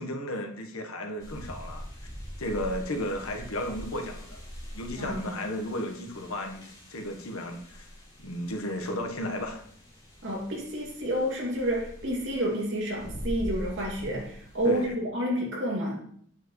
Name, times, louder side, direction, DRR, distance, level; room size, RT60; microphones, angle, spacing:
voice 1, 0.0-1.9 2.4-4.4 4.7-7.9 8.2-9.6 14.6-15.0, left 1 dB, 85° left, 3 dB, 1.3 m, -34 dB
sound 1, 1.2-14.9, equal, 20° left, 3.0 m, -43 dB
voice 2, 5.0-5.4 10.2-16.0, equal, 60° right, -2 dB, 2.6 m, -30 dB
8.9 x 7.2 x 3.2 m, 0.62 s
head